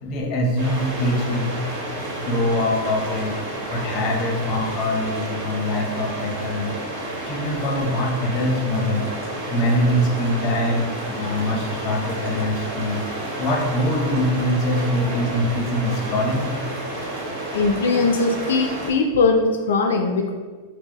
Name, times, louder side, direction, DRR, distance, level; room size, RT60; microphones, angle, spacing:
voice 1, 0.0-1.5 2.1-3.4 3.7-6.7 7.3-9.1 9.5-13.0 13.4-16.5, left 1 dB, 40° left, 1 dB, 0.7 m, -23 dB
sound 1, 0.6-18.9, right 1 dB, 55° right, 1.1 m, -31 dB
voice 2, 17.5-20.3, left 3 dB, 90° left, 3 dB, 0.4 m, -20 dB
4.5 x 2.0 x 2.9 m, 1.4 s
supercardioid pair, 135°, 0 cm